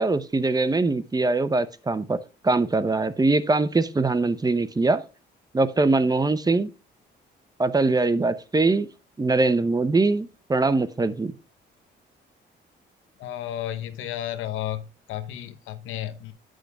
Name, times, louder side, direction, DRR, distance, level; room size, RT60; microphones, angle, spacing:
voice 1, 0.0-2.2 2.4-5.0 5.5-6.7 7.6-8.9 9.2-11.3, right 3 dB, 20° right, 0.8 m, -22 dB
voice 2, 13.2-16.3, left 12 dB, 90° left, 1.0 m, -33 dB
9.6 x 6.4 x 3.5 m
cardioid pair, 90°, 20 cm